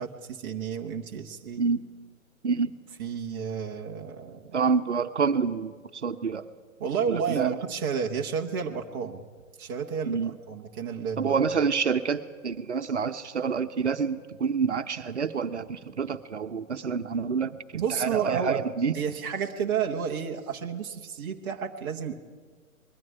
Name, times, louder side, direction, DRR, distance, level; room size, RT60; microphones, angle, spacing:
voice 1, 0.0-1.6 3.0-4.6 6.8-9.2 9.6-11.4 17.7-18.6 18.9-22.1, right 7 dB, 15° right, 0 dB, 0.8 m, -31 dB
voice 2, 4.5-5.7 6.0-6.4 7.1-7.5 10.1-10.3 11.2-18.9, right 5 dB, 55° right, 9 dB, 1.0 m, -27 dB
21.0 x 14.0 x 9.3 m, 1.5 s
figure-of-eight pair, 130°, 42 cm